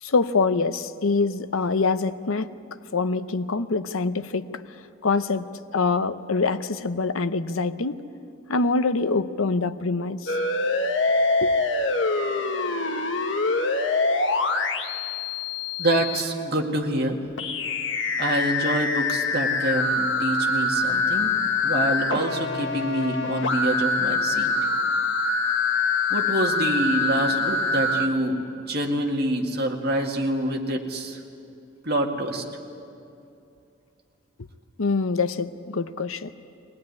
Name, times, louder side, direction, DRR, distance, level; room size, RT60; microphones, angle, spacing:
voice 1, 0.0-2.5 2.9-4.5 5.0-8.0 8.5-10.4 11.4-11.5 34.8-36.3, left 4 dB, 80° left, 12 dB, 0.8 m, -25 dB
sound 1, 10.3-16.2 17.4-28.1, left 3 dB, 60° left, 1.2 m, -24 dB
voice 2, 15.8-17.2 18.2-21.3 21.6-24.5 26.1-31.2 31.8-32.4, right 1 dB, 50° right, 1 dB, 2.1 m, -26 dB
22.5 x 18.5 x 9.6 m, 2.6 s
head